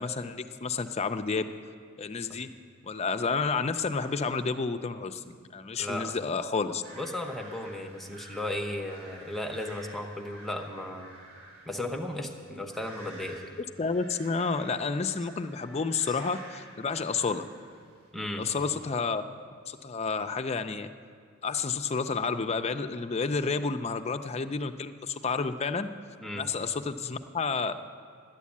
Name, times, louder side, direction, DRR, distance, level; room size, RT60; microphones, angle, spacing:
voice 1, 0.0-1.5 2.0-2.5 2.8-6.8 13.8-17.5 18.4-19.2 19.7-20.9 21.4-25.9 26.3-27.7, left 4 dB, 30° left, 9 dB, 0.4 m, -30 dB
voice 2, 5.8-6.1 6.9-11.1 11.7-13.5 15.2-15.3 16.1-16.2 18.1-18.4 26.2-26.5, left 1 dB, ahead, 3 dB, 0.8 m, -35 dB
sound 1, 6.8-18.1, right 1 dB, 85° right, 3.8 m, -50 dB
12.0 x 8.4 x 8.4 m, 2.1 s
head